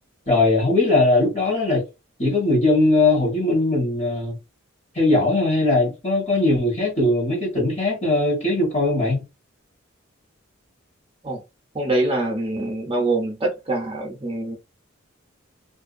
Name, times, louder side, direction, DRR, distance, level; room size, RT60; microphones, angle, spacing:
voice 1, 0.3-1.9 2.2-4.4 4.9-9.2, left 2 dB, 30° left, 1.1 m, -20 dB
voice 2, 11.7-14.6, right 2 dB, 25° right, 0.6 m, -24 dB
2.5 x 2.3 x 2.4 m
head